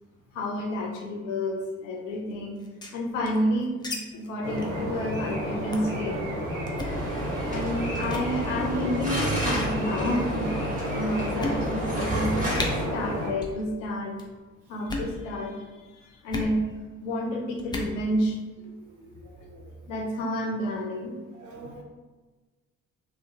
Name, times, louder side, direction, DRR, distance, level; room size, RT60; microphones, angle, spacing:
voice 1, 0.3-2.6 2.9-3.8 4.1-6.2 7.5-10.6 10.9-14.2 14.7-15.7 15.9-16.6 17.0-18.4 19.9-21.2, left 1 dB, 80° left, 2 dB, 0.5 m, -30 dB
sound 1, 2.5-4.0 4.2-4.3 4.6-4.8 5.1-5.3 5.7-6.0 6.7-7.0 7.6-7.8 8.0-8.3 9.2-9.6 10.3-10.4 10.9-11.0 11.4-11.9 12.2-12.3 12.5-12.7 13.3-13.6 13.9-14.3 14.8-15.1 16.3-16.5 17.6-17.9, left 2 dB, 10° left, 0.5 m, -34 dB
sound 2, 4.4-13.3, equal, 85° right, 0.7 m, -31 dB
sound 3, 6.8-12.9, right 1 dB, 20° right, 1.3 m, -32 dB
voice 2, 19.0-19.6 21.4-21.8, right 2 dB, 55° right, 1 dB, 0.7 m, -45 dB
2.7 x 2.1 x 2.8 m, 1.3 s
hypercardioid pair, 45°, 37 cm